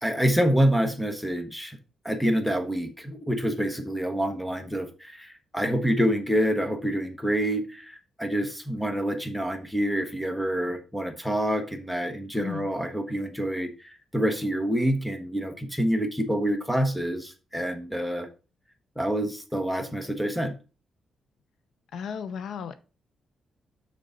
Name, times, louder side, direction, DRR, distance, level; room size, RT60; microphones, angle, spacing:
voice 1, 0.0-1.8 2.0-18.3 19.0-20.6, equal, ahead, 1.2 m, -27 dB
voice 2, 12.3-12.7 21.9-22.8, left 7 dB, 75° left, 0.7 m, -34 dB
6.8 x 6.5 x 3.8 m
cardioid pair, 120°, 0 cm